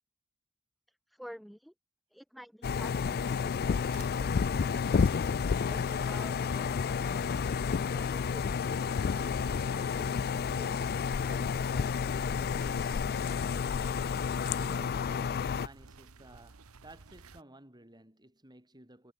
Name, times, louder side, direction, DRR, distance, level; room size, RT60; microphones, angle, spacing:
voice 1, 0.9-1.7 2.1-7.4, equal, ahead, 0.7 m, -51 dB
sound 1, 2.6-15.7, left 6 dB, 45° left, 0.4 m, -30 dB
sound 2, 3.8-17.4, right 3 dB, 80° right, 1.2 m, -53 dB
voice 2, 14.5-19.1, right 1 dB, 20° right, 7.3 m, -54 dB
head